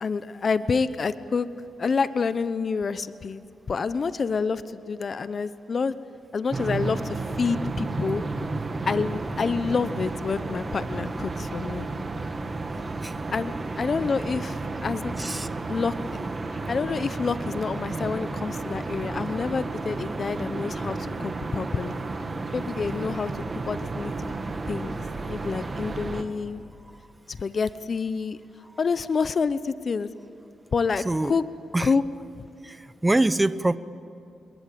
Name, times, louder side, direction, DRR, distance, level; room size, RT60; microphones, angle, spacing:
voice 1, 0.0-1.5 1.8-5.9 6.3-8.2 8.9-11.9 13.3-15.3 15.7-16.0 16.5-22.0 22.5-24.4 24.7-25.0 25.3-26.6 27.4-28.4 28.8-30.1 30.7-31.4 31.8-32.0, left 5 dB, 45° left, 13 dB, 0.9 m, -28 dB
sound 1, 6.5-26.2, right 3 dB, 30° right, 2.1 m, -32 dB
voice 2, 15.2-15.5 31.0-31.3 31.7-31.9 32.6-33.8, right 2 dB, 15° right, 15 dB, 0.8 m, -24 dB
27.5 x 21.5 x 7.6 m, 2.7 s
cardioid pair, 95°, 0 cm